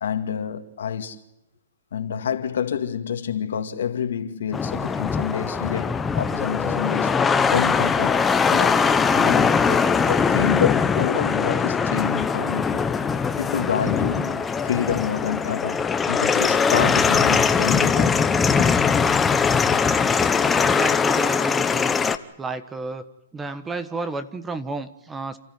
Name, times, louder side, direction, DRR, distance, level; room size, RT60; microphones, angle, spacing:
voice 1, 0.0-1.2 1.9-12.8 13.4-18.7, left 8 dB, 75° left, 2.1 m, -28 dB
sound 1, 4.5-22.2, left 5 dB, 10° left, 0.9 m, -21 dB
voice 2, 20.7-21.9 22.4-23.1 23.3-25.4, right 3 dB, 10° right, 1.2 m, -31 dB
28.5 x 13.5 x 9.5 m
hypercardioid pair, 145°, 0 cm